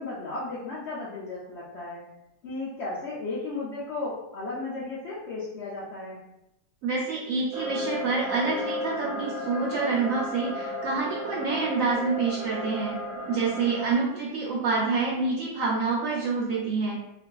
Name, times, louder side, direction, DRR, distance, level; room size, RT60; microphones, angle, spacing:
voice 1, 0.0-2.0 2.4-6.2, left 3 dB, 80° left, -7 dB, 0.6 m, -34 dB
voice 2, 6.8-12.9 13.3-17.0, right 4 dB, 70° right, -4 dB, 0.8 m, -27 dB
sound 1, 7.5-13.9, equal, 85° right, 1.2 m, -34 dB
2.5 x 2.3 x 2.2 m, 0.87 s
omnidirectional pair, 1.7 m